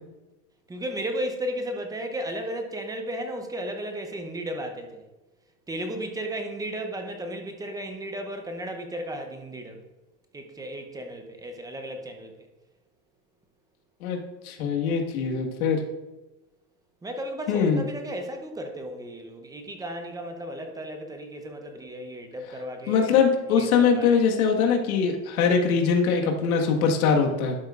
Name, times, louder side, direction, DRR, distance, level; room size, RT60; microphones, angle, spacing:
voice 1, 0.7-5.0 5.7-9.8 10.3-12.3 17.0-23.2 23.5-24.2, right 1 dB, 10° right, 4 dB, 0.7 m, -34 dB
voice 2, 14.4-15.8 17.5-17.8 22.9-27.6, left 6 dB, 80° left, 1 dB, 1.7 m, -22 dB
11.5 x 7.8 x 2.5 m, 1.1 s
supercardioid pair, 140°, 42 cm